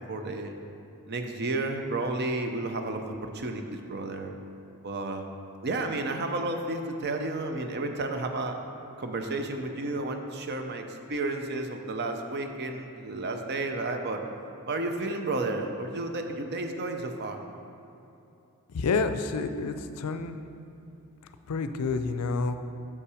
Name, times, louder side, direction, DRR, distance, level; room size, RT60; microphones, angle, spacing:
voice 1, 0.1-0.6 1.1-4.3 4.8-5.3 5.6-8.6 9.0-14.2 14.7-17.4, right 2 dB, 50° right, 5 dB, 0.6 m, -32 dB
voice 2, 18.7-20.4 21.5-22.5, left 4 dB, 85° left, 9 dB, 0.4 m, -29 dB
6.7 x 5.7 x 4.8 m, 2.8 s
head